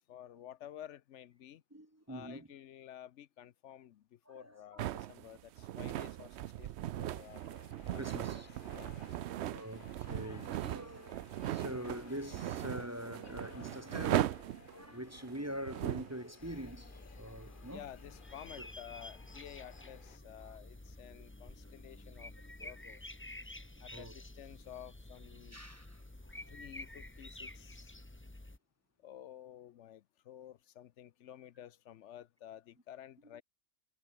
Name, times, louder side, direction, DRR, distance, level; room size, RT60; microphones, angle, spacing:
voice 1, 0.0-1.6 2.1-7.4 7.9-8.0 8.3-8.4 8.7-8.9 17.7-22.3 22.6-23.0 23.8-25.6 26.5-27.9 29.0-33.4, left 11 dB, 75° left, 0.9 m, -52 dB
voice 2, 1.7-2.5 4.3-4.9 7.9-8.5 9.4-11.2 11.5-17.8 18.6-18.7 20.4-20.6 22.6-22.7 23.9-24.2 25.5-26.5 33.3-33.4, equal, 15° right, 1.0 m, -44 dB
sound 1, 4.8-16.2, right 13 dB, 70° right, 0.8 m, -38 dB
sound 2, 7.1-20.2, left 6 dB, 45° left, 1.1 m, -59 dB
sound 3, 16.4-28.6, left 1 dB, 10° left, 1.1 m, -50 dB
omnidirectional pair, 1.2 m